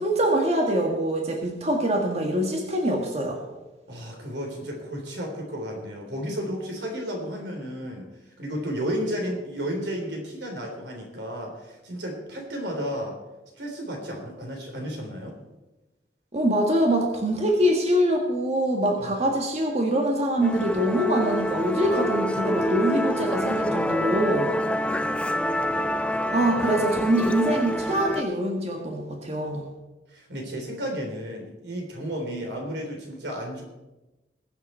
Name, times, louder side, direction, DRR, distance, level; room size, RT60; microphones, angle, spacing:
voice 1, 0.0-3.4 16.3-24.5 26.3-29.6, right 1 dB, 40° right, 0 dB, 1.7 m, -24 dB
voice 2, 3.9-8.1 8.4-13.2 13.6-15.4 19.0-19.1 30.1-33.6, equal, 85° right, 1 dB, 3.6 m, -33 dB
Musical instrument, 20.4-28.2, equal, 5° left, 0.4 m, -27 dB
21.0 x 7.9 x 4.4 m, 1.0 s
head